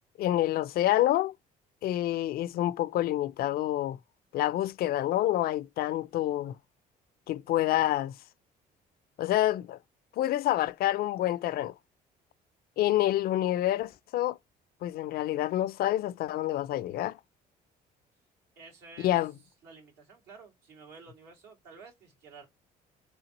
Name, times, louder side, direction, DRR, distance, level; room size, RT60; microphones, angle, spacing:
voice 1, 0.2-1.3 1.8-4.0 4.3-6.6 7.3-8.1 9.2-9.8 10.2-11.7 12.8-14.4 14.8-17.2 19.0-19.3, left 13 dB, 65° left, 0.4 m, -27 dB
voice 2, 18.6-19.1 19.6-22.5, right 4 dB, 85° right, 2.3 m, -51 dB
3.5 x 3.3 x 2.9 m
cardioid pair, 110°, 17 cm